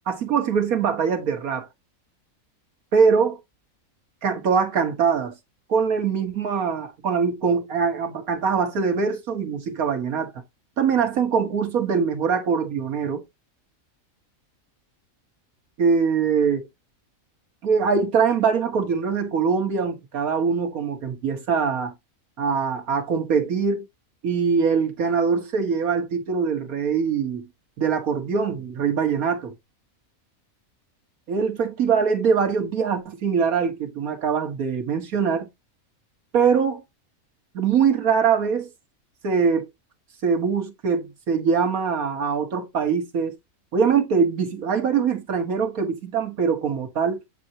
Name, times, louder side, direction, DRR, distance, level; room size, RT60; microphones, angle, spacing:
voice 1, 0.1-1.7 2.9-3.4 4.2-5.3 5.7-10.3 10.8-13.2 15.8-16.6 17.6-21.9 22.4-23.9 24.2-27.5 27.8-29.5 31.3-35.5 36.3-36.8 37.5-38.7 39.2-39.7 40.2-43.4 43.7-47.2, right 6 dB, 85° right, 1.9 m, -23 dB
7.8 x 4.5 x 2.8 m
omnidirectional pair, 1.5 m